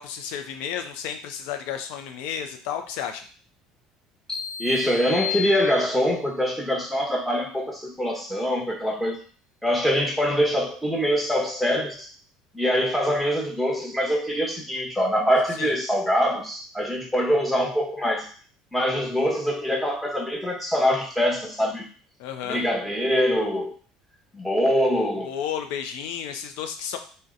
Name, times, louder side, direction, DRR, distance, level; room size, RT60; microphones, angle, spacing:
voice 1, 0.0-3.2 15.5-15.7 22.2-22.6 25.2-27.0, left 8 dB, 75° left, 6 dB, 0.5 m, -32 dB
sound 1, 4.3-6.2, left 7 dB, 25° left, 1.0 m, -33 dB
voice 2, 4.6-9.2 9.6-12.1 12.5-18.3 18.7-21.9 22.5-23.8 24.3-25.3, equal, ahead, -3 dB, 1.0 m, -24 dB
2.7 x 2.1 x 3.7 m, 0.40 s
hypercardioid pair, 75°, 2 cm